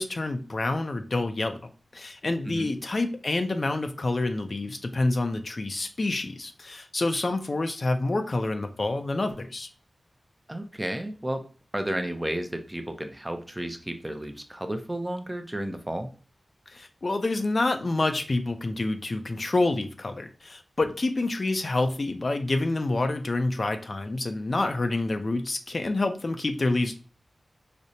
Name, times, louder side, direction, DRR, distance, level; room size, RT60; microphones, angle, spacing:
voice 1, 0.0-9.7 16.7-26.9, left 2 dB, 50° left, 7 dB, 0.4 m, -28 dB
voice 2, 10.5-11.4 11.7-16.1, right 1 dB, 15° right, 7 dB, 0.5 m, -32 dB
4.9 x 2.0 x 2.7 m, 0.38 s
wide cardioid pair, 60°, 0 cm